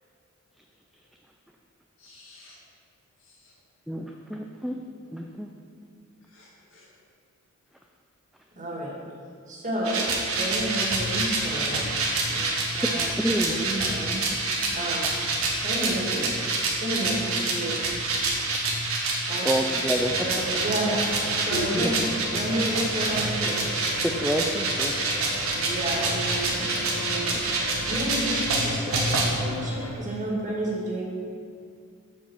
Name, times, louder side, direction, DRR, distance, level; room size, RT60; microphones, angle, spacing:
voice 1, 2.0-2.6 6.3-6.9 21.5-21.8, left 1 dB, 65° left, -3 dB, 1.9 m, -35 dB
voice 2, 3.9-4.8 5.1-5.5 13.2-13.6 19.4-20.2 24.0-24.9, equal, ahead, 2 dB, 0.3 m, -28 dB
voice 3, 8.6-8.9 9.5-11.8 12.3-13.0 13.5-14.2 14.7-15.1 15.6-16.3 16.8-17.8 19.3-19.6 20.2-21.9 22.3-23.6 25.5-27.4 27.8-31.0, right 1 dB, 35° right, -4 dB, 1.9 m, -31 dB
sound 1, 9.8-29.3, right 3 dB, 80° right, 1.5 m, -27 dB
sound 2, 19.9-29.9, equal, 80° left, 1.1 m, -37 dB
7.3 x 4.7 x 7.1 m, 2.2 s
head